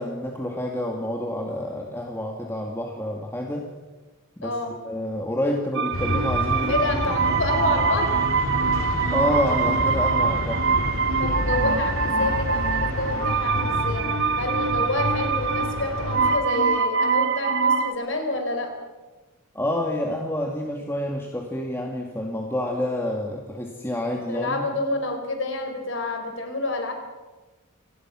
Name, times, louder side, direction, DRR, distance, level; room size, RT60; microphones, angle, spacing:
voice 1, 0.0-3.7 4.4-7.0 9.1-10.7 19.5-24.6, left 1 dB, 10° left, 0 dB, 2.2 m, -28 dB
voice 2, 4.4-4.8 6.7-8.2 11.2-14.1 14.4-18.7 24.3-26.9, left 2 dB, 60° left, 5 dB, 4.4 m, -28 dB
sound 1, 5.7-17.9, right 5 dB, 55° right, 1.2 m, -24 dB
sound 2, 5.9-16.4, left 1 dB, 75° left, 3.0 m, -29 dB
27.5 x 19.0 x 6.2 m, 1.2 s
head